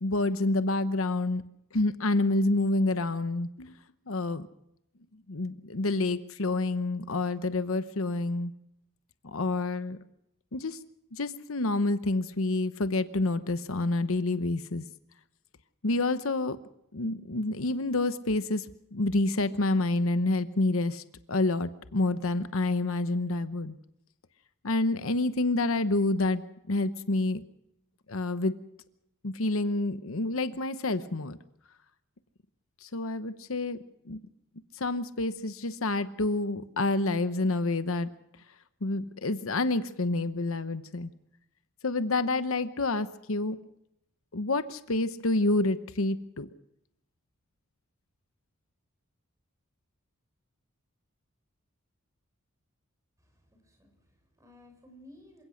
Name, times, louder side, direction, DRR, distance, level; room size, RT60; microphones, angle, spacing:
voice 1, 0.0-1.4 1.7-3.7 4.1-4.5 5.3-8.5 9.2-10.0 10.5-10.8 11.1-14.8 15.8-16.6 16.9-18.7 18.9-23.8 24.6-26.4 26.7-27.4 28.1-28.5 29.2-31.4 32.8-33.8 34.1-34.2 34.8-38.1 38.8-41.1 41.8-43.6 44.3-46.5, left 2 dB, 70° left, 12 dB, 1.0 m, -28 dB
voice 2, 53.2-55.4, left 1 dB, 15° right, 4 dB, 6.1 m, -56 dB
27.5 x 17.0 x 6.4 m, 0.81 s
head